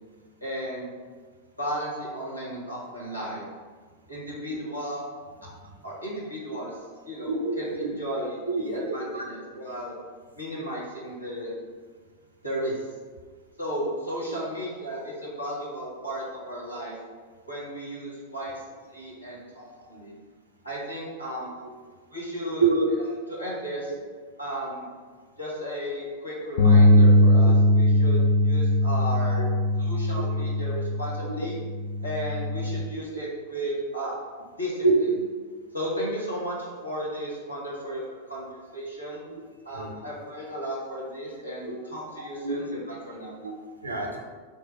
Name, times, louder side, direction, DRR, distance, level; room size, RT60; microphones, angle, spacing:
voice 1, 0.4-0.9 1.6-3.5 4.1-5.0 5.8-6.8 7.0-7.7 8.0-9.9 10.4-11.5 12.4-12.9 13.6-17.0 17.5-20.1 20.6-21.5 22.1-22.6 23.3-23.9 24.4-24.9 25.4-29.4 29.8-31.6 32.0-34.1 34.6-34.8 35.7-39.2 39.6-43.4, equal, 90° left, -7 dB, 1.0 m, -34 dB
voice 2, 7.3-7.9 8.5-9.3 19.2-19.3 22.6-22.9 28.0-28.1 29.3-29.5 30.4-30.5 34.8-34.9 39.7-40.0 41.7-41.8 42.4-42.6 43.4-44.2, right 4 dB, 80° right, 0 dB, 0.5 m, -27 dB
Bass guitar, 26.6-32.8, left 1 dB, 50° left, 0.4 m, -20 dB
3.2 x 2.2 x 4.2 m, 1.5 s
figure-of-eight pair, 90°, 0 cm